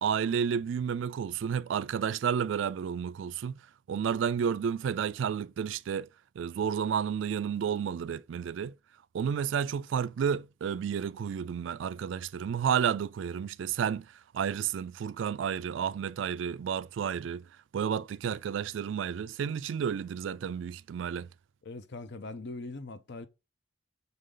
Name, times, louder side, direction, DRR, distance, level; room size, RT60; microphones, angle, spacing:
voice 1, 0.0-3.6 3.9-6.1 6.4-8.7 9.1-17.4 17.7-21.3, right 7 dB, 70° right, 0.3 m, -31 dB
voice 2, 21.6-23.3, left 3 dB, 60° left, 0.7 m, -41 dB
6.6 x 3.9 x 3.8 m
head